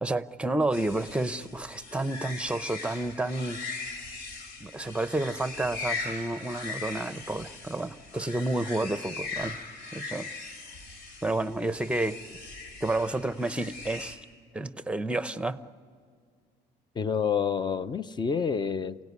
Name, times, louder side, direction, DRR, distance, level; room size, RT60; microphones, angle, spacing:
voice 1, 0.0-3.6 4.6-9.6 9.9-10.3 11.2-12.2 12.8-14.2 14.5-15.6, right 2 dB, 5° right, 13 dB, 0.8 m, -30 dB
sound 1, 0.7-14.2, left 3 dB, 80° left, 3.3 m, -40 dB
voice 2, 17.0-19.0, left 6 dB, 25° left, 15 dB, 0.6 m, -28 dB
28.5 x 17.5 x 9.7 m, 2.1 s
cardioid pair, 110°, 17 cm